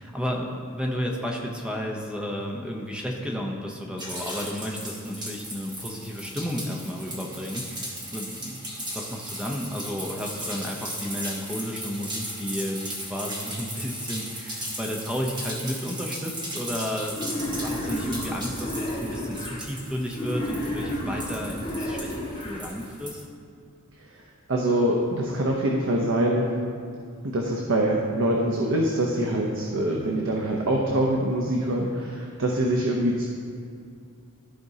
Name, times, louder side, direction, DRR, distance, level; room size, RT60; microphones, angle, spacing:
voice 1, 0.0-8.6 8.9-17.2 17.6-23.3, equal, 5° right, -1 dB, 0.6 m, -32 dB
sound 1, 4.0-23.2, right 1 dB, 20° right, 1.2 m, -37 dB
Wild animals, 17.1-19.6 20.1-22.6, left 1 dB, 25° left, 1.7 m, -31 dB
voice 2, 24.5-26.5 27.2-33.2, right 1 dB, 60° right, -1 dB, 0.7 m, -24 dB
14.0 x 5.1 x 2.7 m, 2.3 s
head